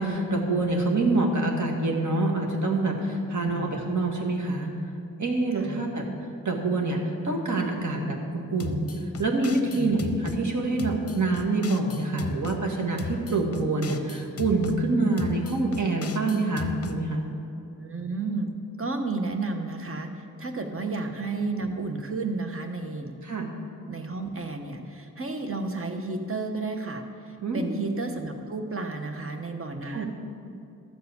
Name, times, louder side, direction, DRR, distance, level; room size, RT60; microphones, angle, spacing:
voice 1, 0.0-4.7 5.2-6.0 6.4-8.9 9.2-17.2 23.2-23.5 27.4-27.8 29.9-30.1, right 2 dB, 55° right, 0 dB, 1.6 m, -26 dB
sound 1, 8.6-10.4 10.8-12.6 13.0-14.8 15.2-17.0, left 4 dB, 45° left, 0.6 m, -36 dB
voice 2, 17.8-18.5 18.8-23.1 23.9-30.1, right 3 dB, 40° right, 5 dB, 1.0 m, -32 dB
13.0 x 4.8 x 8.0 m, 2.5 s
wide cardioid pair, 115°, 35 cm